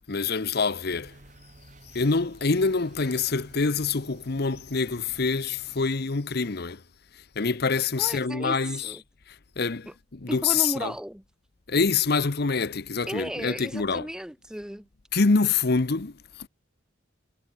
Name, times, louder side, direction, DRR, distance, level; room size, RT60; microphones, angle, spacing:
voice 1, 0.1-1.2 1.9-6.8 7.1-9.0 9.3-10.9 11.7-14.1 15.1-16.5, left 4 dB, 55° left, 0.9 m, -26 dB
sound 1, 0.9-5.9, right 1 dB, 40° right, 2.9 m, -52 dB
voice 2, 8.0-9.0 9.9-10.0 10.3-11.2 13.1-14.9, equal, 5° right, 0.8 m, -35 dB
head